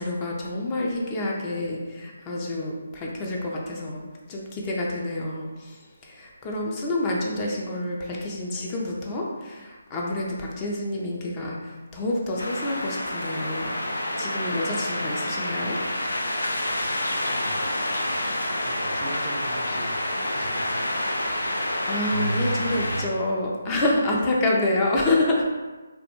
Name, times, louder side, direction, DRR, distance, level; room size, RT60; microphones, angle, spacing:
voice 1, 0.0-4.0 4.3-15.8 21.7-25.4, left 2 dB, 20° left, -2 dB, 0.4 m, -28 dB
sound 1, 12.4-23.0, left 1 dB, 85° left, 0.4 m, -28 dB
voice 2, 17.3-17.8 18.5-20.8, right 2 dB, 45° right, 2 dB, 0.3 m, -40 dB
2.3 x 2.1 x 2.9 m, 1.2 s
figure-of-eight pair, 155°, 0 cm